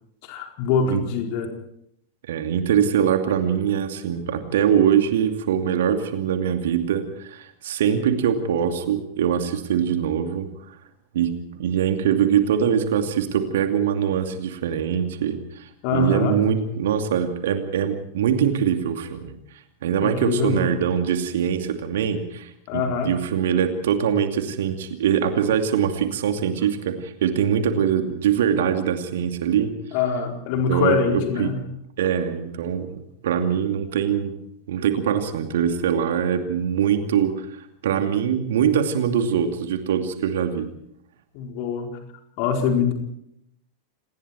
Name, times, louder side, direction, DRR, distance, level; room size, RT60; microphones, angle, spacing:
voice 1, 0.2-1.6 15.8-16.4 20.0-20.8 22.7-23.1 29.9-31.6 41.3-42.0 42.4-42.9, left 6 dB, 45° left, 4 dB, 4.4 m, -24 dB
voice 2, 2.3-10.5 11.1-19.3 19.8-29.7 30.7-31.5 32.0-34.3 34.7-37.5 37.8-40.7, right 8 dB, 60° right, 7 dB, 2.5 m, -23 dB
28.0 x 20.0 x 4.6 m, 0.73 s
figure-of-eight pair, 90°, 0 cm